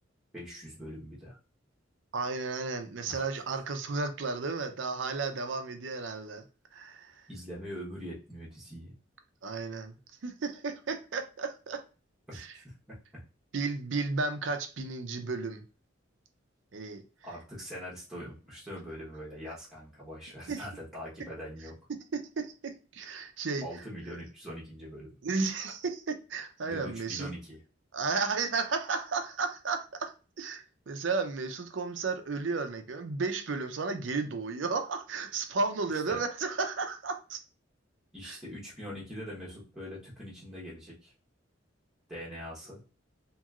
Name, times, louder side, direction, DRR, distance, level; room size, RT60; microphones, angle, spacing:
voice 1, 0.3-1.4 3.1-3.2 7.3-8.9 12.3-13.2 17.2-21.7 23.6-25.1 26.6-27.6 36.1-36.2 38.1-41.1 42.1-42.8, equal, 5° right, 1.0 m, -43 dB
voice 2, 2.1-6.4 6.7-7.3 9.4-11.8 12.3-12.5 13.5-15.6 16.7-17.0 20.5-20.7 22.1-23.6 25.2-27.3 27.9-37.4 38.2-38.4, right 4 dB, 70° right, 0.5 m, -33 dB
2.9 x 2.9 x 2.4 m
head